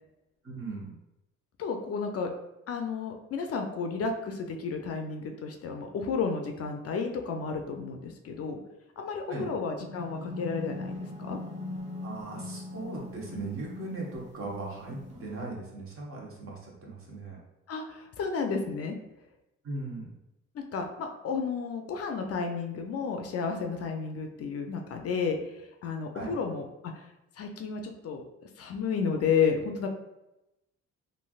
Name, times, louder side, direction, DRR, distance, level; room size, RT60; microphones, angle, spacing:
voice 1, 0.4-0.9 9.3-9.5 12.0-17.4 19.6-20.1 26.1-26.3, right 3 dB, 45° right, -3 dB, 1.0 m, -38 dB
voice 2, 1.6-2.3 2.7-8.6 9.0-10.9 11.3-11.4 17.7-19.0 20.5-27.1 27.4-28.2 28.6-29.9, left 5 dB, 50° left, 4 dB, 0.5 m, -32 dB
sound 1, 9.8-15.4, left 2 dB, 20° right, 0.9 m, -40 dB
3.2 x 2.6 x 2.3 m, 0.91 s
cardioid pair, 90°, 30 cm